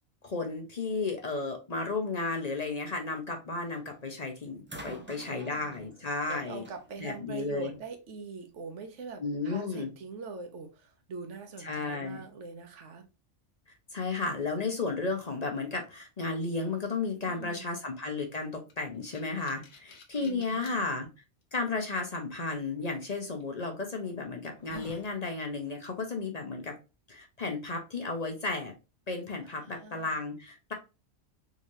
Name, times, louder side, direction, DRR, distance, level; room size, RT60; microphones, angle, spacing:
voice 1, 0.2-6.6 7.0-7.7 9.2-9.9 11.6-12.2 13.9-21.1 21.5-26.7 27.1-28.7 29.1-30.7, left 3 dB, 40° left, 0.7 m, -33 dB
sound 1, 3.7-4.1 4.7-7.9 9.0-9.1, right 1 dB, 15° right, 0.4 m, -49 dB
voice 2, 4.9-5.7 6.3-13.1 17.3-17.8 20.2-20.9 29.4-30.1, right 4 dB, 85° right, 1.2 m, -43 dB
sound 2, 18.7-20.8 21.4-21.5 23.2-23.4 24.0-24.1 24.4-25.1, left 5 dB, 75° left, 1.1 m, -48 dB
3.7 x 3.2 x 2.6 m
omnidirectional pair, 1.2 m